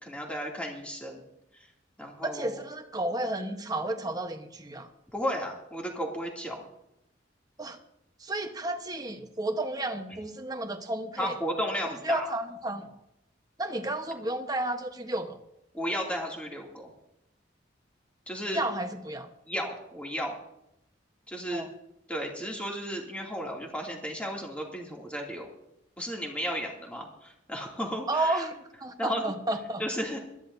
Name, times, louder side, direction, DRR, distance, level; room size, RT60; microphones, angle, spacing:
voice 1, 0.0-1.2 1.5-1.7 2.0-2.6 5.1-6.6 11.2-12.3 15.7-16.9 18.3-18.6 19.5-20.3 21.3-21.6 22.1-25.5 26.0-28.5 29.0-29.3 29.8-30.2, equal, 5° left, -1 dB, 2.6 m, -34 dB
voice 2, 2.2-4.9 7.6-7.8 8.2-11.4 11.8-12.9 13.6-15.4 18.5-19.3 21.5-21.7 28.1-29.8, right 1 dB, 20° right, 5 dB, 1.1 m, -32 dB
21.5 x 13.5 x 2.7 m, 0.82 s
head